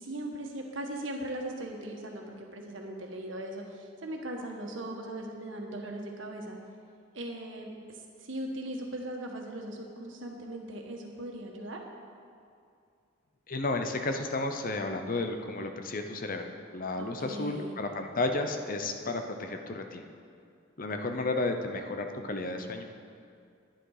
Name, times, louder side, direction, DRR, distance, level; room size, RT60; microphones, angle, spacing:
voice 1, 0.0-6.6 7.1-11.8 17.0-17.8, right 1 dB, 75° right, 1 dB, 1.5 m, -39 dB
voice 2, 13.5-16.5 16.7-20.0 20.8-22.8, left 2 dB, 45° left, 5 dB, 0.8 m, -32 dB
10.5 x 10.0 x 4.9 m, 2.3 s
head